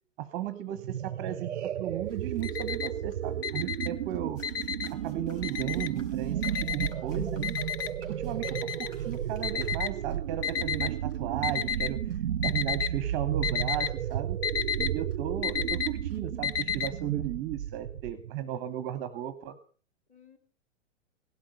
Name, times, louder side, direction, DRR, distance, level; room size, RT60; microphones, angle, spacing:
voice 1, 0.2-1.5 1.8-4.4 4.9-7.6 8.1-14.4 14.8-19.6, right 11 dB, 25° right, 12 dB, 0.9 m, -35 dB
sound 1, 0.7-18.3, right 11 dB, 60° right, 0.6 m, -33 dB
Alarm, 2.1-3.1 3.4-5.0 5.4-6.1 6.4-10.9 11.4-12.0 12.3-13.0 13.2-16.9, left 9 dB, 45° left, 0.9 m, -32 dB
voice 2, 3.6-4.2 14.5-15.1 15.5-15.6 20.1-20.4, left 8 dB, 20° left, 7 dB, 2.6 m, -56 dB
sound 2, 4.4-10.2, equal, 85° left, 5.2 m, -53 dB
17.0 x 12.5 x 5.3 m, 0.42 s
figure-of-eight pair, 110°, 38 cm